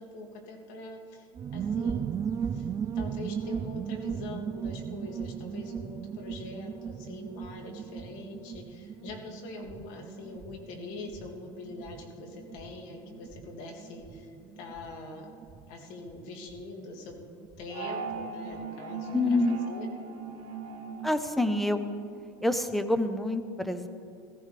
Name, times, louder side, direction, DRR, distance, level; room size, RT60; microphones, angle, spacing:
voice 1, 0.0-2.1 2.5-2.7 2.9-14.3 14.6-15.3 15.7-17.1 17.6-19.9, left 3 dB, 65° left, 2 dB, 2.4 m, -43 dB
sound 1, 1.3-17.6 17.9-18.0 18.2-18.6, right 7 dB, 25° right, 0.3 m, -37 dB
sound 2, 17.7-22.3, right 5 dB, 50° right, 1.6 m, -39 dB
voice 2, 19.1-19.6 21.0-21.8 22.4-23.9, left 2 dB, ahead, 9 dB, 0.8 m, -27 dB
19.0 x 14.5 x 3.4 m, 2.4 s
supercardioid pair, 115°, 13 cm